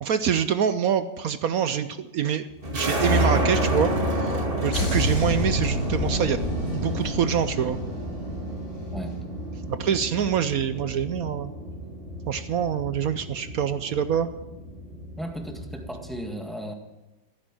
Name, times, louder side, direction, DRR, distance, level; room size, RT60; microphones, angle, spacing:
voice 1, 0.0-2.5 2.7-6.4 6.7-7.8 9.7-11.5 12.3-14.3, right 8 dB, 65° right, 12 dB, 0.9 m, -25 dB
sound 1, 2.6-16.2, right 1 dB, 30° right, 2.4 m, -30 dB
sound 2, 4.7-9.3 9.5-9.8, left 1 dB, 35° left, 3.4 m, -30 dB
voice 2, 15.2-16.7, equal, ahead, 4 dB, 1.6 m, -35 dB
16.0 x 9.5 x 9.0 m, 1.0 s
omnidirectional pair, 2.1 m